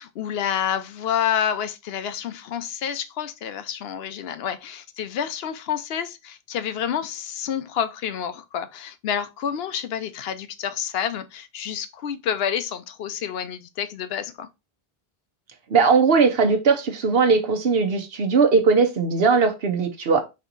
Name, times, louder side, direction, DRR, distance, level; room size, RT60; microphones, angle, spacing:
voice 1, 0.0-14.5, left 8 dB, 80° left, 0.8 m, -29 dB
voice 2, 15.7-20.2, right 5 dB, 70° right, 1.0 m, -19 dB
4.3 x 2.9 x 3.8 m
omnidirectional pair, 1.0 m